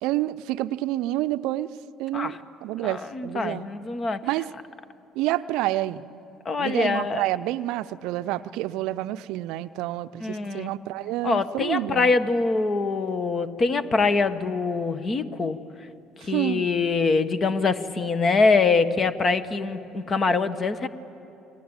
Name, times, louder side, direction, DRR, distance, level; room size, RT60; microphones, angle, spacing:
voice 1, 0.0-1.7 2.0-3.7 4.2-4.5 5.1-6.0 6.6-12.1 16.2-16.7, right 15 dB, 70° right, 14 dB, 0.6 m, -28 dB
voice 2, 2.8-4.2 6.4-7.2 10.2-10.7 11.2-15.6 16.2-20.9, left 4 dB, 40° left, 11 dB, 1.5 m, -24 dB
29.5 x 23.0 x 8.9 m, 2.8 s
hypercardioid pair, 55°, 0 cm